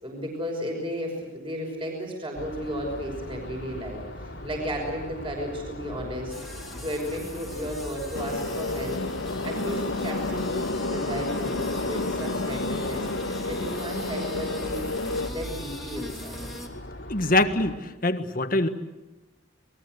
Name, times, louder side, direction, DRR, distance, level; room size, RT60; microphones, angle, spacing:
voice 1, 0.0-9.0 9.4-14.9 15.3-16.5, equal, 25° right, 1 dB, 5.9 m, -34 dB
sound 1, 2.4-17.8, left 1 dB, 60° left, 3.0 m, -40 dB
sound 2, 6.3-16.7, left 1 dB, ahead, 3.1 m, -43 dB
sound 3, 8.1-15.3, left 2 dB, 75° left, 1.8 m, -30 dB
voice 2, 17.1-17.8 18.0-18.7, left 2 dB, 45° left, 8 dB, 1.6 m, -23 dB
28.5 x 21.0 x 8.1 m, 1.1 s
head